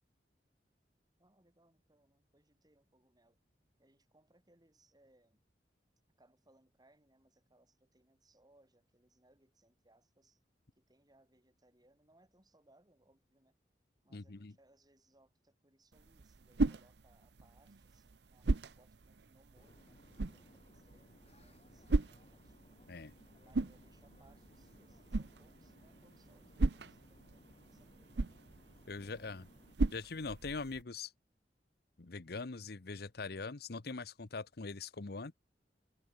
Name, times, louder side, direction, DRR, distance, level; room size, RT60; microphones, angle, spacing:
voice 1, 1.2-3.4 3.8-5.4 6.2-10.4 10.8-13.6 14.0-22.7 23.3-28.3 28.9-29.5, right 1 dB, 25° right, 6.9 m, -70 dB
voice 2, 14.1-14.5 22.9-23.1 28.9-29.5 29.9-31.1 32.0-35.3, left 4 dB, 60° left, 0.9 m, -42 dB
sound 1, 15.9-30.8, right 2 dB, 70° right, 0.8 m, -39 dB
sound 2, 19.5-29.8, left 1 dB, 35° left, 2.2 m, -63 dB
head